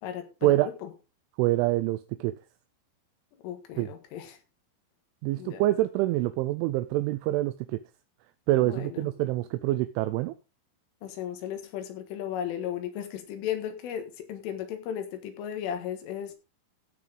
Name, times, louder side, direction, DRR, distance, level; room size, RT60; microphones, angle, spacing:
voice 1, 0.0-0.9 3.4-4.4 5.4-5.6 8.6-9.3 11.0-16.3, left 9 dB, 75° left, 4.0 m, -35 dB
voice 2, 1.4-2.3 3.8-3.9 5.2-7.8 8.5-10.3, right 16 dB, 80° right, 2.9 m, -26 dB
16.0 x 5.9 x 3.9 m
omnidirectional pair, 5.9 m